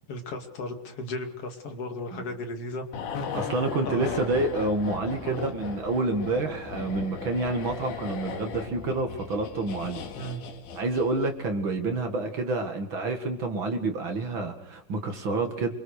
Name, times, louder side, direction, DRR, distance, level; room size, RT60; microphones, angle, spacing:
voice 1, 0.1-2.8 3.4-4.4 5.2-5.5 10.1-10.4, left 1 dB, 40° left, 4 dB, 2.6 m, -36 dB
sound 1, 2.9-11.5 11.7-11.9, left 5 dB, 70° left, 4.3 m, -37 dB
voice 2, 3.3-10.0 10.7-15.7, right 2 dB, 80° right, 4 dB, 1.1 m, -28 dB
27.5 x 24.0 x 6.6 m, 0.73 s
omnidirectional pair, 5.7 m